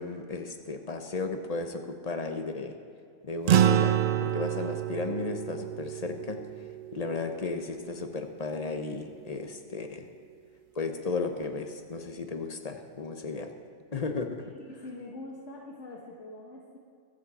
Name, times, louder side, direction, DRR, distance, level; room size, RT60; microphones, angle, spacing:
voice 1, 0.0-2.7 3.2-6.4 6.9-10.1 10.7-13.5 13.9-14.4, left 3 dB, 35° left, 6 dB, 1.0 m, -34 dB
sound 1, 3.5-8.1, right 10 dB, 60° right, 0.6 m, -28 dB
voice 2, 14.4-16.8, left 2 dB, 70° left, -2 dB, 1.6 m, -44 dB
23.5 x 8.1 x 4.2 m, 2.3 s
omnidirectional pair, 1.3 m